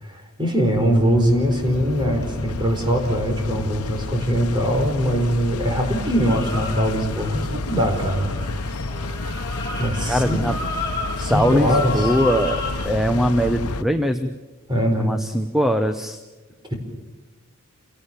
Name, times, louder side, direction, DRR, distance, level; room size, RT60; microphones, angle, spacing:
voice 1, 0.0-8.4 9.8-10.4 11.2-12.1 14.7-15.1 16.6-16.7, equal, 20° right, 3 dB, 4.9 m, -22 dB
sound 1, 0.6-13.8, left 2 dB, 85° left, 1.0 m, -30 dB
sound 2, 2.2-5.3 5.6-12.7, left 3 dB, 15° left, 6.7 m, -33 dB
voice 2, 10.1-10.6 11.3-14.4 15.0-16.2, equal, ahead, 8 dB, 0.9 m, -21 dB
28.0 x 18.5 x 7.3 m, 1.2 s
head